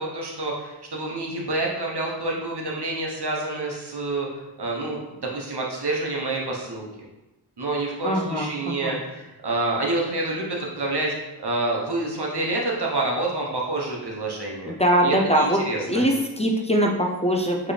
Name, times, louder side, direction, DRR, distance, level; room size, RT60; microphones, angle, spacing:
voice 1, 0.0-5.0 5.3-6.9 7.6-11.1 11.4-14.7 15.0-16.0, right 2 dB, 70° right, -2 dB, 1.0 m, -28 dB
voice 2, 8.0-8.9 14.6-17.7, equal, 15° left, 0 dB, 0.5 m, -22 dB
4.5 x 3.3 x 3.3 m, 1.0 s
wide cardioid pair, 45°, 41 cm